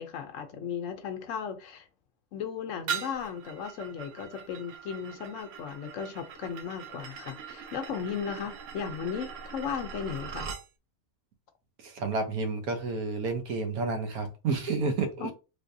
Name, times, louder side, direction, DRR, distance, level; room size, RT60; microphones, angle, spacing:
voice 1, 0.0-1.9 2.3-10.5 15.2-15.3, left 7 dB, 70° left, 0.9 m, -36 dB
sound 1, 2.9-10.7, right 7 dB, 65° right, 0.9 m, -41 dB
voice 2, 11.8-15.3, right 3 dB, 85° right, 1.3 m, -30 dB
3.4 x 3.2 x 2.6 m
omnidirectional pair, 1.5 m